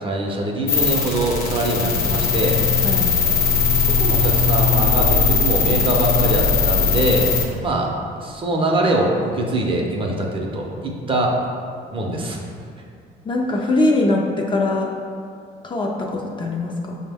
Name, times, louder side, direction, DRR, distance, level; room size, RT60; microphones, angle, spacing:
voice 1, 0.0-2.6 3.8-7.3 7.6-7.9 8.2-11.3 11.9-12.4, right 1 dB, 30° right, 0 dB, 0.6 m, -23 dB
sound 1, 0.7-7.4, left 5 dB, 65° left, 0.9 m, -19 dB
voice 2, 13.3-14.9 15.6-17.0, left 2 dB, 30° left, 0 dB, 0.4 m, -21 dB
5.2 x 2.1 x 3.4 m, 2.3 s
cardioid pair, 110°, 17 cm